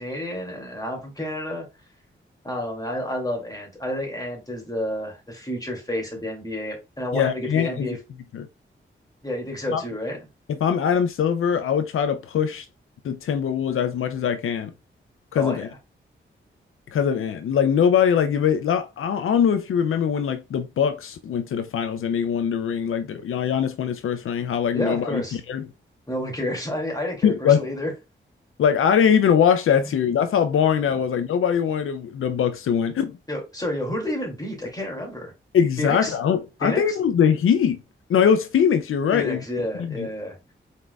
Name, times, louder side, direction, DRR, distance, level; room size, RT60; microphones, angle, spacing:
voice 1, 0.0-1.6 2.4-8.0 9.2-10.2 15.4-15.6 24.7-25.4 26.1-27.9 33.3-35.3 35.8-36.1 36.6-37.0 39.1-40.4, left 1 dB, 20° left, 2.4 m, -30 dB
voice 2, 7.1-7.9 8.3-8.5 9.7-9.8 10.5-12.7 13.0-14.7 15.3-15.7 16.9-25.7 27.2-27.6 28.6-33.2 35.5-37.8 38.1-39.4 39.8-40.1, left 8 dB, 80° left, 0.4 m, -22 dB
4.5 x 4.1 x 2.3 m
cardioid pair, 60°, 21 cm